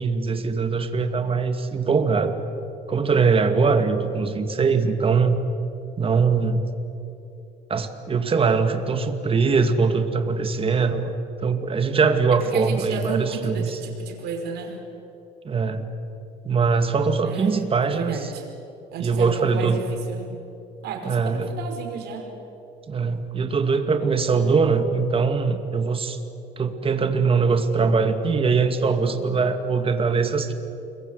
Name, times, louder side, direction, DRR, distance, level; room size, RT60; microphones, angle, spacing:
voice 1, 0.0-2.4 2.9-5.4 6.0-6.7 7.7-11.2 11.4-13.8 15.4-15.9 16.4-18.3 19.0-19.8 21.1-21.5 22.9-26.2 26.6-30.5, right 5 dB, 35° right, 7 dB, 2.4 m, -22 dB
voice 2, 12.5-14.8 17.2-17.5 17.8-18.5 18.9-20.2 20.8-22.3, right 5 dB, 75° right, 3 dB, 5.2 m, -33 dB
29.0 x 22.5 x 8.2 m, 2.9 s
cardioid pair, 110°, 17 cm